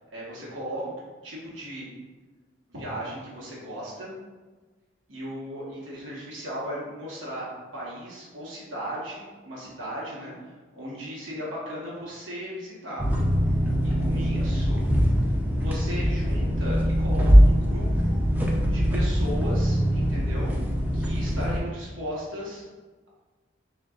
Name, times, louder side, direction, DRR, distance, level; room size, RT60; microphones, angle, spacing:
voice 1, 0.1-0.9 1.2-1.9 2.7-4.1 5.1-13.1 13.8-14.8 15.6-18.2 18.7-20.5 20.9-22.6, equal, 85° right, -6 dB, 1.1 m, -36 dB
sound 1, 13.0-21.6, equal, 10° right, 0.3 m, -22 dB
6.5 x 2.2 x 2.3 m, 1.3 s
head